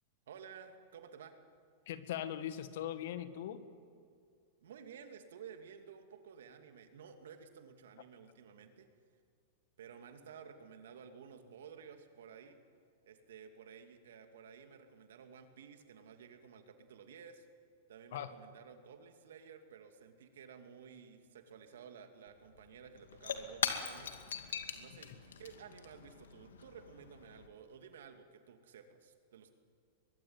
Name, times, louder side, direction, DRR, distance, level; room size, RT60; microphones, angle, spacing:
voice 1, 0.3-1.4 4.6-8.9 9.8-12.6 13.0-17.5 17.9-24.1 24.7-29.5, right 7 dB, 75° right, 6 dB, 2.7 m, -54 dB
voice 2, 1.9-3.6 18.1-18.3 25.0-25.1, left 11 dB, 65° left, 11 dB, 1.9 m, -40 dB
Shatter / Crushing, 22.3-22.4 22.6-27.5, left 7 dB, 85° left, 2.3 m, -41 dB
23.0 x 21.5 x 9.7 m, 2.3 s
hypercardioid pair, 115°, 0 cm